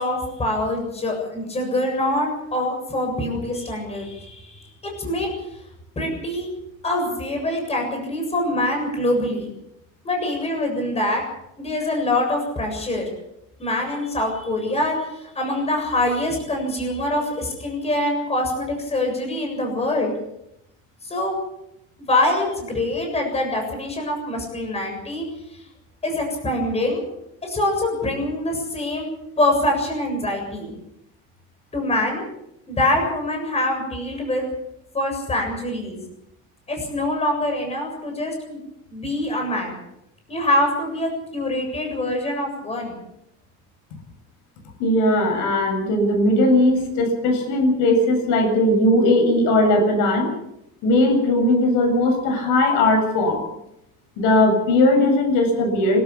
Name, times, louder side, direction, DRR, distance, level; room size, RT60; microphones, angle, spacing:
voice 1, 0.0-5.3 6.0-6.5 6.8-9.5 10.0-11.2 11.6-13.1 13.6-20.1 21.0-21.4 22.1-25.7 26.0-27.1 27.4-29.1 29.4-30.7 31.7-32.2 32.7-34.5 34.9-36.0 36.7-38.6 38.9-39.8 40.3-43.0, left 1 dB, 20° left, 2 dB, 7.4 m, -24 dB
voice 2, 44.8-50.3 50.8-53.4 54.2-56.0, left 1 dB, 70° left, 5 dB, 7.8 m, -18 dB
26.5 x 13.0 x 8.6 m, 0.83 s
cardioid pair, 150°, 32 cm